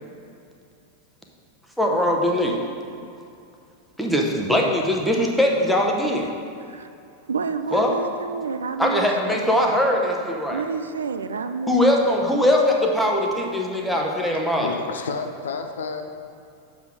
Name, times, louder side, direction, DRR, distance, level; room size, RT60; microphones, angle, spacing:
voice 1, 1.8-2.6 4.0-6.3 7.7-7.9 8.8-10.6 11.7-14.8, left 1 dB, ahead, 0.9 m, -21 dB
voice 2, 7.3-9.5 10.5-12.2, right 5 dB, 70° right, 0.3 m, -29 dB
voice 3, 14.2-16.0, left 5 dB, 65° left, 0.5 m, -31 dB
6.8 x 4.0 x 6.3 m
figure-of-eight pair, 90°, 0 cm